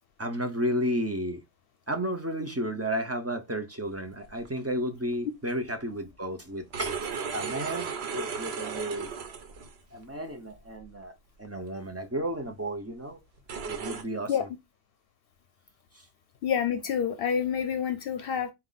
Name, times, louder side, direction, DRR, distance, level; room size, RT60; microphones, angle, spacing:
voice 1, 0.2-1.4 1.9-7.1 7.3-9.1 9.9-11.1 11.4-13.2 13.7-14.5 15.9-16.1, equal, 20° right, 0.4 m, -32 dB
sound 1, 4.3-4.5 6.5-9.8 10.5-10.8 11.4-11.5 12.3-12.4 13.4-14.0, right 6 dB, 85° right, 1.0 m, -35 dB
voice 2, 16.4-18.5, left 8 dB, 70° left, 0.7 m, -28 dB
4.2 x 2.4 x 3.7 m
omnidirectional pair, 1.0 m